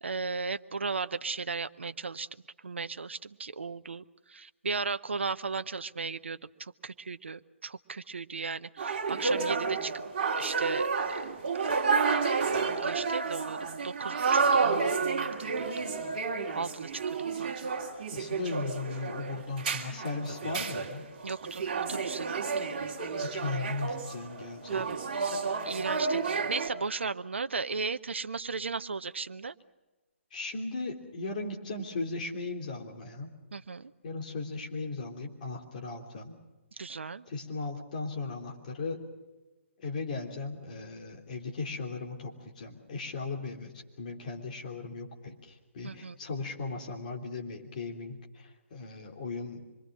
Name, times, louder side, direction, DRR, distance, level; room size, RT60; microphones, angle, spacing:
voice 1, 0.0-2.3 2.6-10.0 10.4-11.2 11.6-11.7 12.6-15.7 16.5-17.5 21.2-22.3 22.6-22.8 24.7-25.0 25.3-29.6 33.5-33.9 36.8-37.3 45.8-46.2, right 4 dB, 60° right, 12 dB, 0.7 m, -36 dB
sound 1, 8.8-26.7, right 5 dB, 40° right, 2.8 m, -30 dB
voice 2, 18.1-21.1 23.2-24.9 30.3-33.3 34.0-36.3 37.3-39.0 39.8-49.6, left 3 dB, 35° left, 1 dB, 3.3 m, -37 dB
25.5 x 22.5 x 6.2 m, 1.2 s
figure-of-eight pair, 135°, 7 cm